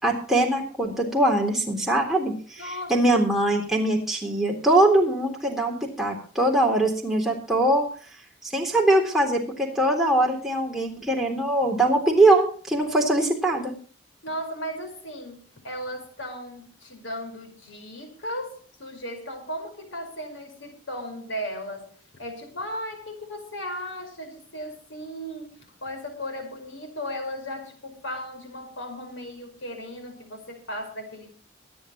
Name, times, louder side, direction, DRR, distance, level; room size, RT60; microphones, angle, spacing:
voice 1, 0.0-7.9 8.5-13.7, right 1 dB, ahead, -2 dB, 3.6 m, -22 dB
voice 2, 2.6-3.0 14.2-31.3, equal, 80° left, 5 dB, 5.2 m, -36 dB
24.0 x 9.7 x 3.0 m, 0.42 s
head